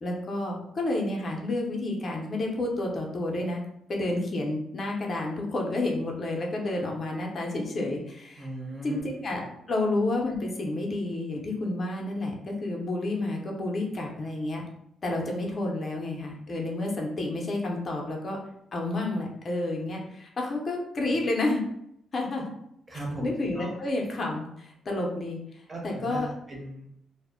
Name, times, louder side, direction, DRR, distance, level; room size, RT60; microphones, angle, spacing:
voice 1, 0.0-3.6 3.9-8.5 8.8-9.4 9.7-14.6 15.0-18.4 18.7-21.6 22.1-22.5 23.2-25.4 25.8-26.3, left 2 dB, 35° left, 0 dB, 0.5 m, -30 dB
voice 2, 8.4-9.1 22.9-23.7 25.7-26.9, right 1 dB, 25° right, -2 dB, 0.7 m, -37 dB
2.0 x 2.0 x 3.5 m, 0.76 s
cardioid pair, 125°, 0 cm